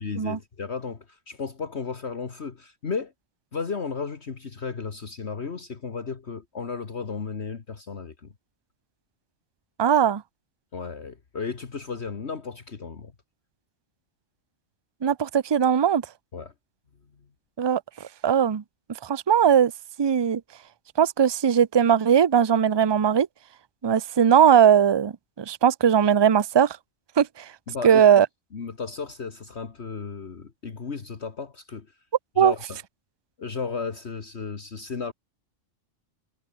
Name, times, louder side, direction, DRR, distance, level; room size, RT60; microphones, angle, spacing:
voice 1, 0.0-3.1 3.5-8.3 10.7-13.1 16.3-16.5 27.7-28.0 28.5-31.9 32.4-32.8 33.4-35.1, left 5 dB, 55° left, 1.9 m, -34 dB
voice 2, 9.8-10.2 15.0-16.0 17.6-17.8 18.2-18.6 19.0-19.7 20.0-20.4 21.0-23.3 23.8-25.1 25.4-26.8 27.2-27.4 27.8-28.3 32.4-32.5, right 8 dB, 40° right, 0.3 m, -19 dB
omnidirectional pair, 1.3 m